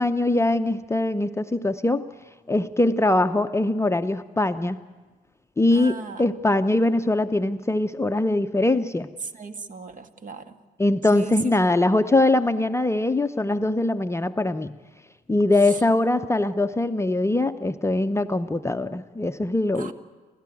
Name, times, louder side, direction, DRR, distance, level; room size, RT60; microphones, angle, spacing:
voice 1, 0.0-2.0 2.5-4.8 5.6-9.1 10.8-14.8 15.3-19.9, left 2 dB, 15° left, 9 dB, 0.7 m, -22 dB
voice 2, 5.7-6.2 9.3-10.4 11.2-11.3 19.8-19.9, right 4 dB, 40° right, 8 dB, 1.8 m, -37 dB
29.5 x 13.5 x 9.2 m, 1.3 s
hypercardioid pair, 60°, 21 cm